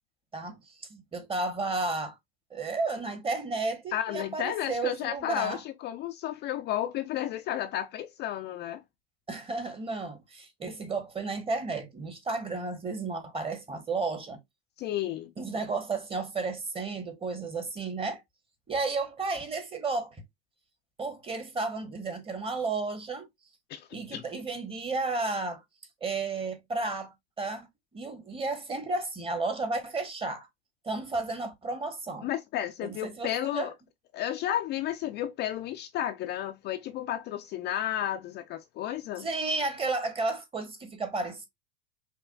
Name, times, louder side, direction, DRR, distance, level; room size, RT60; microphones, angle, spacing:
voice 1, 0.3-2.2 2.5-5.6 9.3-14.4 15.4-18.2 18.7-20.2 21.0-23.3 23.9-25.6 26.0-27.7 27.9-30.5 30.8-32.3 32.8-33.7 39.2-41.5, right 3 dB, 20° right, 1.1 m, -32 dB
voice 2, 3.9-8.8 14.8-15.3 23.7-24.2 32.2-33.7 34.1-39.3, left 12 dB, 35° left, 0.4 m, -32 dB
5.6 x 2.2 x 2.4 m
hypercardioid pair, 95°, 31 cm